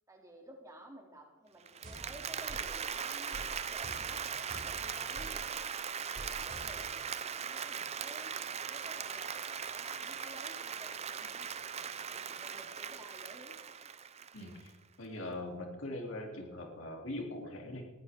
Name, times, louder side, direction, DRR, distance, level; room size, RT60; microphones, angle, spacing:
voice 1, 0.1-5.8 6.2-11.5 12.0-13.7, right 1 dB, 15° right, 1 dB, 2.8 m, -54 dB
Applause, 1.7-14.7, right 7 dB, 30° right, 0.5 m, -40 dB
sound 1, 1.8-2.7 3.3-3.5 3.8-5.4 6.2-7.0, right 1 dB, 50° right, 6.2 m, -47 dB
voice 2, 14.3-14.7 15.0-17.8, left 1 dB, 80° left, 1 dB, 3.1 m, -41 dB
19.5 x 15.0 x 3.7 m, 1.2 s
head